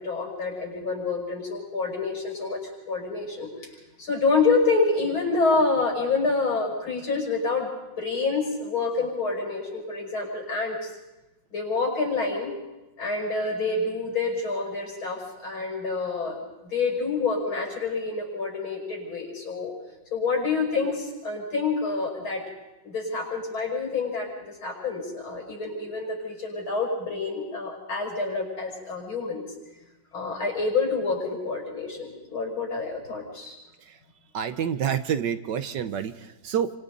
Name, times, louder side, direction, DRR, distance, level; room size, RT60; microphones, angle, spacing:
voice 1, 0.0-3.5 4.0-7.7 8.0-10.9 11.5-12.5 13.0-19.7 20.1-22.5 22.8-29.5 30.1-33.5, left 4 dB, 75° left, 0 dB, 6.8 m, -27 dB
voice 2, 34.3-36.7, right 8 dB, 65° right, 10 dB, 1.4 m, -28 dB
29.5 x 25.5 x 4.0 m, 1.0 s
omnidirectional pair, 2.2 m